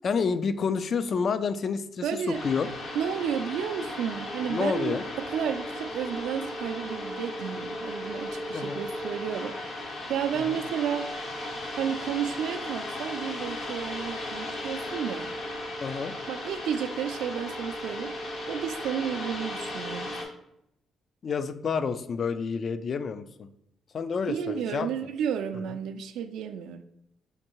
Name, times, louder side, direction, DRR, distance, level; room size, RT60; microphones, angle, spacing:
voice 1, 0.0-2.7 4.5-5.1 8.5-8.8 10.3-10.6 15.8-16.1 21.2-23.5 23.9-24.9, left 5 dB, 50° left, 12 dB, 0.3 m, -29 dB
voice 2, 2.0-2.4 2.9-9.8 10.1-11.1 11.8-15.3 16.3-18.2 18.5-20.2 24.3-26.8, right 8 dB, 85° right, 9 dB, 0.3 m, -32 dB
sound 1, 2.3-20.2, left 1 dB, 70° left, 1.0 m, -36 dB
6.4 x 2.6 x 2.9 m, 0.81 s
cardioid pair, 90°, 0 cm